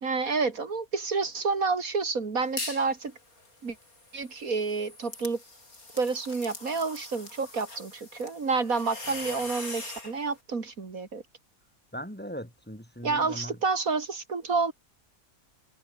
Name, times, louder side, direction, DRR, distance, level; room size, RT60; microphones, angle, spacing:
voice 1, 0.0-3.1 3.6-3.8 4.1-5.4 5.9-11.2 13.0-14.7, right 4 dB, 75° right, 2.9 m, -29 dB
sound 1, 2.4-2.9 3.3-10.1, left 2 dB, 90° left, 6.8 m, -41 dB
voice 2, 9.1-9.5 11.9-13.6, equal, 5° left, 5.3 m, -40 dB
omnidirectional pair, 1.5 m